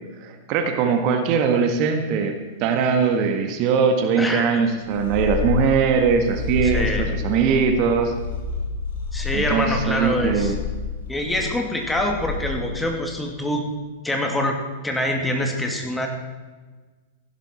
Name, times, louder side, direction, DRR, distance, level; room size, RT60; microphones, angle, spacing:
voice 1, 0.2-2.3 2.6-8.1 9.3-10.5, right 6 dB, 45° right, 5 dB, 1.6 m, -21 dB
voice 2, 4.2-4.7 6.6-7.1 9.1-10.5 11.1-13.7 14.0-16.1, left 1 dB, 5° left, 2 dB, 2.3 m, -25 dB
Purr, 4.8-12.9, left 5 dB, 75° left, 4.0 m, -29 dB
15.5 x 11.5 x 4.4 m, 1.3 s
figure-of-eight pair, 100°, 0 cm